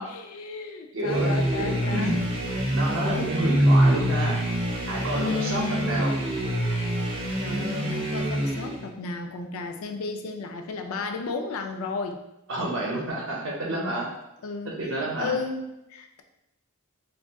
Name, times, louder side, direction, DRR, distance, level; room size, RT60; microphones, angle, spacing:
voice 1, 0.1-2.3 5.1-6.0 7.4-12.2 14.4-16.2, left 4 dB, 75° left, 5 dB, 0.3 m, -33 dB
voice 2, 0.9-2.2 2.7-4.4 4.9-6.2 12.5-14.1 14.6-15.3, right 1 dB, 60° right, -2 dB, 0.7 m, -29 dB
sound 1, 1.0-8.9, right 1 dB, 25° right, 0.3 m, -25 dB
3.5 x 2.4 x 2.2 m, 0.91 s
head